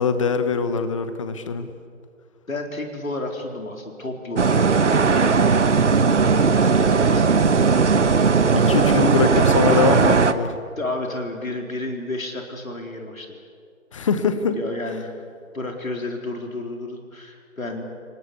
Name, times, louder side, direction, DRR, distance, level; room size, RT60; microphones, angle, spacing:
voice 1, 0.0-1.7 8.5-10.5 13.9-14.6, left 5 dB, 25° left, 10 dB, 1.2 m, -22 dB
voice 2, 2.5-5.5 6.5-7.3 9.2-9.4 10.8-13.3 14.5-15.1 15.5-17.8, left 2 dB, 75° left, 3 dB, 4.1 m, -31 dB
sound 1, 4.4-10.3, right 5 dB, 55° right, 1.3 m, -17 dB
30.0 x 19.5 x 8.4 m, 2.2 s
figure-of-eight pair, 150°, 41 cm